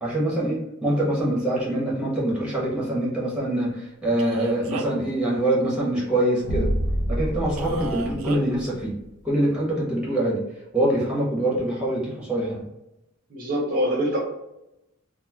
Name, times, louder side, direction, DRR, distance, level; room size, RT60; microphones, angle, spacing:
voice 1, 0.0-6.7 7.1-8.9 9.2-10.4 10.7-12.6, right 1 dB, 5° right, -5 dB, 0.9 m, -24 dB
Male speech man speaking, 4.2-5.1 7.6-8.4, right 4 dB, 80° right, 0.4 m, -34 dB
sound 1, 6.4-9.1, equal, 85° left, 0.7 m, -27 dB
voice 2, 13.3-14.2, equal, 40° right, -2 dB, 0.6 m, -24 dB
3.0 x 2.0 x 3.3 m, 0.90 s
head